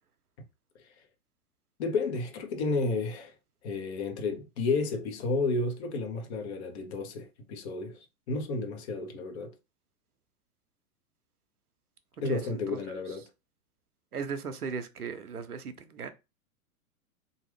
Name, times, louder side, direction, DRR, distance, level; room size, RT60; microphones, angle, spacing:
voice 1, 1.8-3.3 3.6-9.5 12.2-13.2, left 3 dB, 50° left, 1.1 m, -32 dB
voice 2, 12.2-13.0 14.1-16.1, right 5 dB, 90° right, 0.7 m, -38 dB
3.6 x 2.7 x 3.4 m
figure-of-eight pair, 105°, 44 cm